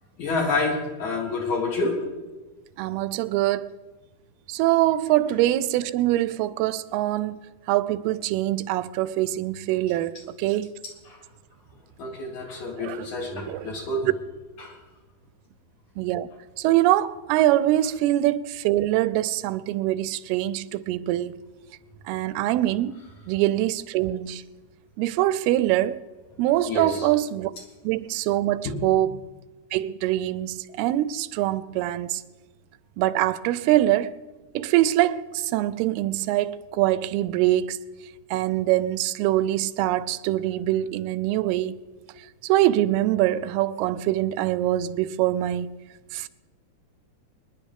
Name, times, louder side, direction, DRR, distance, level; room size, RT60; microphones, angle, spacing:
voice 1, 0.2-2.0 12.0-14.1 14.6-14.8 26.7-27.1 28.6-28.8, left 3 dB, 55° left, 3.0 m, -28 dB
voice 2, 2.8-3.7 4.5-7.4 7.7-10.7 12.8-13.1 13.5-13.7 14.0-14.1 16.0-16.3 16.6-21.4 22.1-23.0 23.3-24.4 25.0-26.0 26.4-27.5 27.8-29.2 29.7-32.2 33.0-34.2 34.5-37.8 38.3-41.8 42.4-45.8 46.1-46.3, right 14 dB, 90° right, 2.5 m, -24 dB
24.5 x 10.5 x 3.5 m
omnidirectional pair, 4.4 m